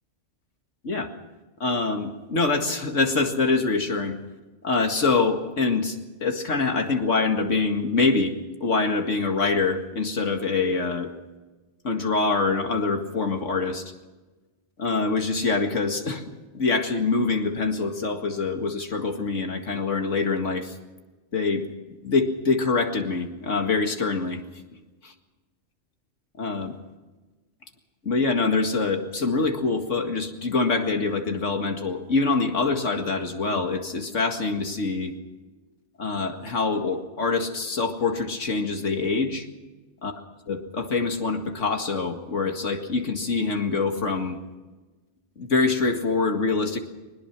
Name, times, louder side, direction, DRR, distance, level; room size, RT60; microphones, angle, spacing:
voice 1, 1.6-4.2 4.6-8.3 8.6-11.1 11.8-13.8 14.8-20.7 21.3-21.7 22.0-24.4 26.4-26.8 28.0-35.1 36.0-39.5 40.0-40.1 40.5-44.4 45.4-46.8, left 3 dB, 85° left, 4 dB, 2.3 m, -25 dB
22.0 x 20.0 x 6.1 m, 1.2 s
omnidirectional pair, 1.2 m